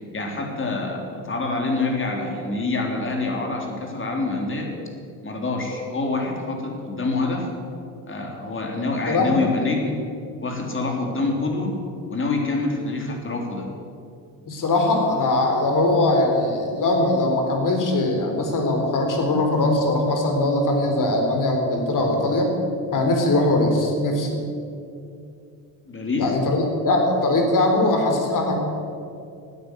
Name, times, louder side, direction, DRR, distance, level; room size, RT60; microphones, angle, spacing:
voice 1, 0.1-4.7 5.2-7.5 8.1-10.0 10.4-11.7 12.1-13.7 25.9-26.3, left 3 dB, 30° left, 2 dB, 3.7 m, -26 dB
voice 2, 14.5-22.5 22.9-24.4 26.2-28.6, left 2 dB, 45° left, 3 dB, 4.0 m, -21 dB
13.5 x 9.4 x 9.4 m, 2.5 s
supercardioid pair, 80°, 42 cm